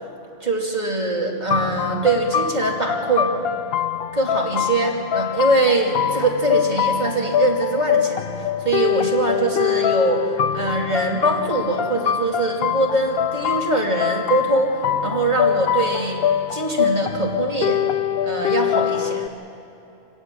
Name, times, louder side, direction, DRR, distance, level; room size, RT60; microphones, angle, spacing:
voice 1, 0.4-3.3 4.1-16.2 16.5-17.8 18.2-19.3, right 2 dB, 45° right, -1 dB, 2.8 m, -22 dB
sound 1, 1.5-19.3, left 9 dB, 70° left, 0.9 m, -24 dB
26.5 x 18.0 x 7.5 m, 2.9 s
omnidirectional pair, 1.0 m